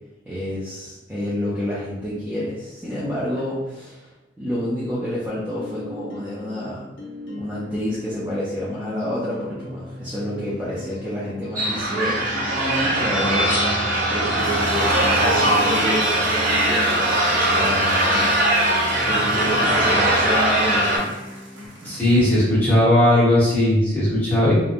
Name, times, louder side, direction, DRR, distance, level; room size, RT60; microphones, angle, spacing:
voice 1, 0.3-4.1 4.4-6.9 7.4-18.3 19.0-21.1 21.8-22.1, equal, 10° right, -10 dB, 0.4 m, -29 dB
sound 1, 5.6-21.7, left 2 dB, 80° left, 0.5 m, -39 dB
sound 2, 11.6-21.0, right 1 dB, 45° right, 0.7 m, -20 dB
sound 3, 14.4-22.5, equal, 80° right, 0.6 m, -38 dB
voice 2, 21.8-24.5, left 1 dB, 10° left, -10 dB, 1.0 m, -17 dB
2.8 x 2.1 x 2.4 m, 1.0 s
head